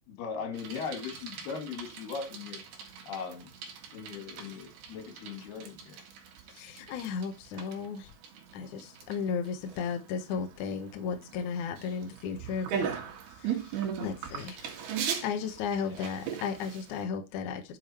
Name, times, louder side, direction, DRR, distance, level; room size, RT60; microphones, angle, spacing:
voice 1, 0.1-2.6 3.1-3.5 3.9-6.0 9.6-9.8 15.8-16.1, left 6 dB, 80° left, 4.2 m, -39 dB
Bicycle, 0.5-17.0, right 8 dB, 75° right, 3.9 m, -40 dB
voice 2, 6.6-8.0 8.5-12.9 14.0-14.6 15.2-17.6, left 6 dB, 65° left, 2.2 m, -34 dB
10.0 x 7.1 x 4.4 m
omnidirectional pair, 4.4 m